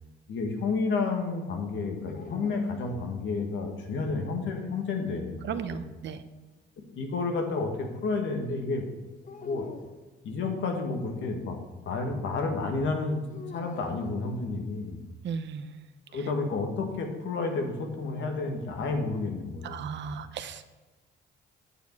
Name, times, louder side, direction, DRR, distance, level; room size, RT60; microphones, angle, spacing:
voice 1, 0.3-5.9 6.8-8.8 9.2-9.7 10.2-11.6 11.8-15.0 16.1-20.1, left 3 dB, 70° left, 3 dB, 1.8 m, -31 dB
sound 1, 2.1-3.6 5.3-6.4 9.3-10.1 13.3-14.9, left 5 dB, 40° left, 0.9 m, -48 dB
voice 2, 5.4-6.2 15.2-15.8 16.1-16.2 19.6-20.8, right 7 dB, 65° right, 10 dB, 0.8 m, -36 dB
9.0 x 7.2 x 4.7 m, 1.2 s
cardioid pair, 90°, 20 cm